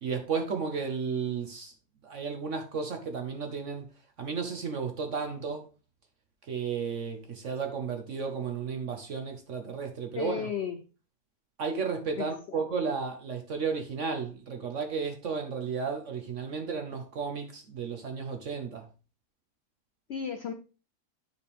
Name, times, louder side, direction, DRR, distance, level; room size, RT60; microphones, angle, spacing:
voice 1, 0.0-1.7 2.0-3.9 4.2-5.6 6.5-10.5 11.6-18.9, right 5 dB, 55° right, 1.0 m, -33 dB
voice 2, 10.1-10.8 12.2-12.6 20.1-20.5, left 7 dB, 80° left, 0.5 m, -34 dB
9.5 x 4.3 x 3.4 m
omnidirectional pair, 1.7 m